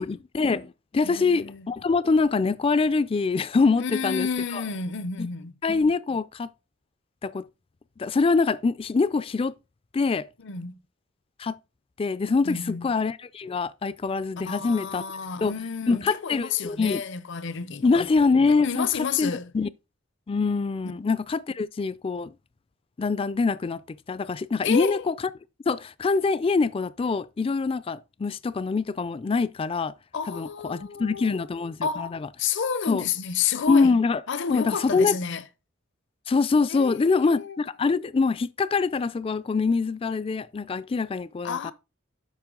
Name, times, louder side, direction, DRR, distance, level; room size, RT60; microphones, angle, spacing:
voice 1, 0.0-4.6 5.2-5.3 5.6-6.5 7.2-7.5 8.0-9.5 9.9-10.3 11.4-11.6 12.0-15.0 15.4-15.5 15.9-17.0 17.8-18.9 19.2-19.7 20.3-22.3 23.0-25.2 25.7-29.9 30.3-32.3 32.9-33.0 33.7-34.2 34.5-35.2 36.3-41.7, left 4 dB, 25° left, 0.3 m, -24 dB
voice 2, 1.0-1.7 3.8-5.6 10.4-10.7 12.4-12.9 14.5-17.9 18.6-19.5 24.6-25.0 30.1-31.5 31.8-33.9 34.3-35.4 36.7-37.6 41.4-41.7, left 6 dB, 60° left, 0.7 m, -30 dB
7.4 x 5.6 x 3.7 m
head